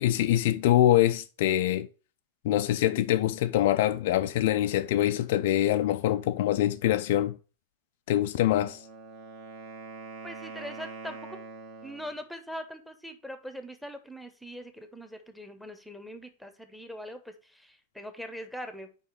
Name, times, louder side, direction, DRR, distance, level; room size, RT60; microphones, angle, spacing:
voice 1, 0.0-1.9 2.4-7.4 8.1-8.8, left 13 dB, 55° left, 0.4 m, -24 dB
Wind instrument woodwind instrument, 8.4-12.2, right 4 dB, 45° right, 1.6 m, -44 dB
voice 2, 10.2-11.4 11.8-18.9, equal, ahead, 1.0 m, -42 dB
5.1 x 4.8 x 6.1 m
figure-of-eight pair, 90°, 0 cm